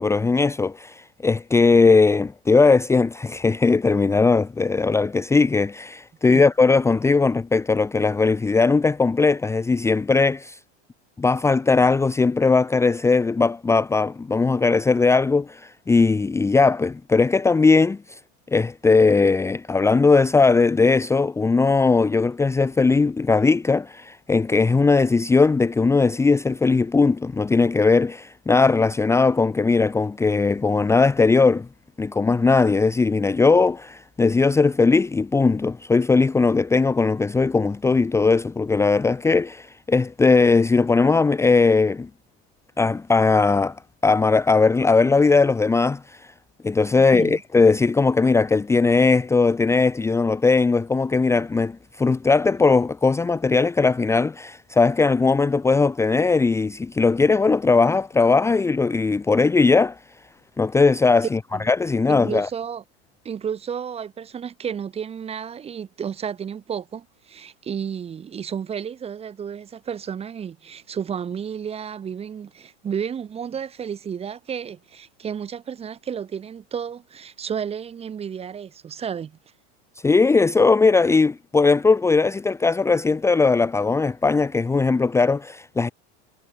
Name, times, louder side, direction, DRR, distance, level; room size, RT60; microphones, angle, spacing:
voice 1, 0.0-10.6 11.2-18.2 18.5-31.7 32.0-42.1 42.8-46.3 46.6-60.0 60.6-61.4 61.7-62.5 80.0-85.9, left 4 dB, 10° left, 1.1 m, -19 dB
voice 2, 47.0-47.4 61.5-61.7 62.1-62.8 63.3-79.4, right 7 dB, 15° right, 1.8 m, -32 dB
supercardioid pair, 155°, 35 cm